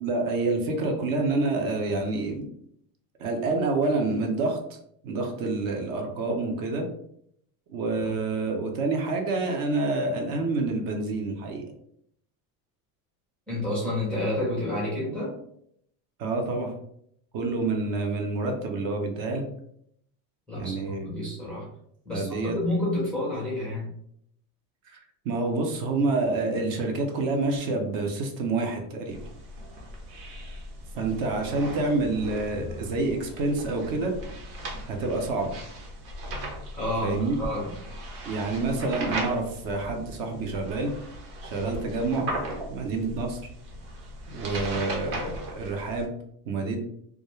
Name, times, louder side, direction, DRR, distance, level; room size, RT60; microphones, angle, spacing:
voice 1, 0.0-2.5 3.2-4.6 5.0-6.9 7.7-11.6 16.2-16.7 17.3-19.5 20.5-21.1 22.1-22.6 24.9-25.0 25.2-29.2 30.9-34.1 34.9-35.6 37.0-37.4 38.2-40.9 41.4-42.3 42.7-43.4 44.3-46.1 46.5-46.8, right 3 dB, 50° right, 3 dB, 0.6 m, -28 dB
voice 2, 13.5-15.4 20.5-21.7 22.1-23.9 36.7-37.7, left 1 dB, 5° left, -7 dB, 0.4 m, -29 dB
sound 1, 29.1-46.1, right 1 dB, 80° right, 0.9 m, -38 dB
2.3 x 2.1 x 3.0 m, 0.71 s
cardioid pair, 150°, 46 cm